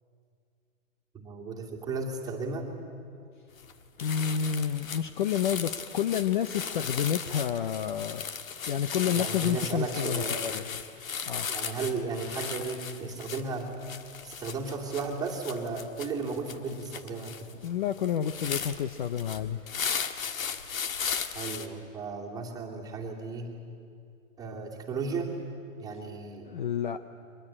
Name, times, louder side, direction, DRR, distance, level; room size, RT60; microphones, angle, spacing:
voice 1, 1.1-2.7 9.1-10.6 11.5-13.7 14.2-17.3 21.3-23.5 24.4-25.3 25.8-26.5, right 4 dB, 10° right, -2 dB, 2.4 m, -35 dB
sound 1, 3.6-3.7 4.0-21.7, left 7 dB, 75° left, 1.7 m, -36 dB
voice 2, 4.0-8.3 8.7-10.6 11.3-11.5 17.6-19.7 26.4-27.0, left 8 dB, 35° left, 11 dB, 0.6 m, -29 dB
23.5 x 21.0 x 8.7 m, 2.4 s
hypercardioid pair, 155°, 41 cm